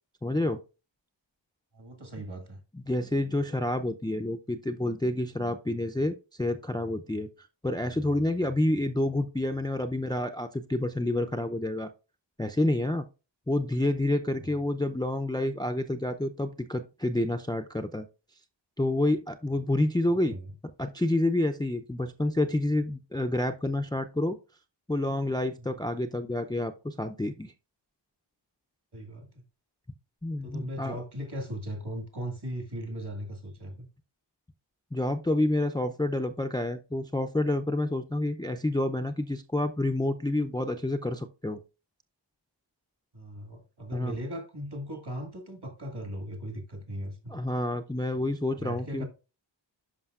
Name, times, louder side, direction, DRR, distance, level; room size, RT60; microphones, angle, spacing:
voice 1, 0.2-0.6 2.7-7.3 7.6-11.9 12.4-13.1 13.5-18.1 18.8-20.4 20.8-24.4 24.9-27.5 30.2-31.0 34.9-41.6 43.9-44.2 47.3-49.0, left 1 dB, 10° left, 0.5 m, -28 dB
voice 2, 1.7-2.6 20.1-20.5 25.6-25.8 28.9-29.4 30.4-33.9 43.1-47.4 48.5-49.1, equal, 60° right, 1.9 m, -38 dB
11.5 x 5.1 x 2.4 m
wide cardioid pair, 50°, 46 cm